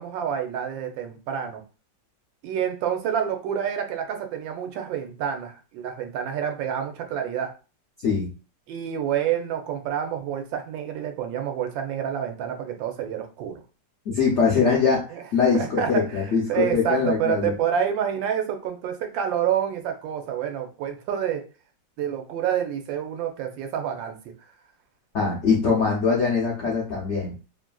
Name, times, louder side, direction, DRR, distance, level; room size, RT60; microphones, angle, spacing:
voice 1, 0.0-1.6 2.4-7.5 8.7-13.6 15.1-15.2 15.5-21.4 22.0-24.2, right 9 dB, 90° right, 5 dB, 1.3 m, -28 dB
voice 2, 14.1-15.0 15.3-17.5 25.1-27.3, left 5 dB, 70° left, -4 dB, 0.6 m, -22 dB
3.1 x 2.4 x 2.2 m, 0.34 s
omnidirectional pair, 2.0 m